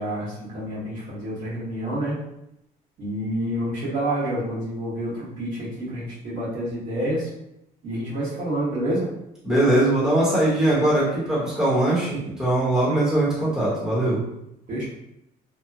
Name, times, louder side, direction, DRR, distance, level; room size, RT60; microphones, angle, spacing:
voice 1, 0.0-2.2 3.0-7.3 7.8-9.1 14.7-14.8, right 1 dB, 50° right, -8 dB, 1.4 m, -28 dB
voice 2, 9.4-14.2, right 1 dB, 5° right, -8 dB, 1.1 m, -21 dB
2.9 x 2.3 x 2.4 m, 0.84 s
cardioid pair, 110°, 17 cm